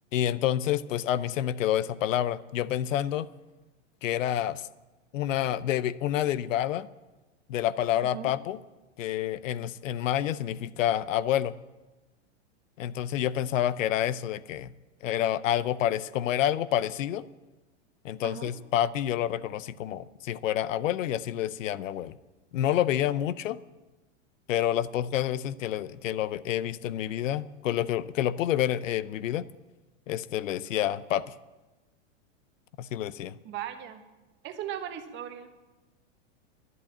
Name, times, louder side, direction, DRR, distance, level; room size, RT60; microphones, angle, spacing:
voice 1, 0.1-3.3 4.0-4.7 5.1-6.9 7.5-8.6 9.0-11.5 12.8-14.7 15.0-17.3 18.0-22.2 22.5-23.6 24.5-29.4 30.1-31.2 32.8-33.4, left 11 dB, 85° left, 18 dB, 0.7 m, -28 dB
voice 2, 18.2-18.5 33.4-34.0 34.4-35.5, right 10 dB, 30° right, 7 dB, 1.3 m, -37 dB
11.0 x 11.0 x 8.6 m, 1.1 s
supercardioid pair, 145°, 38 cm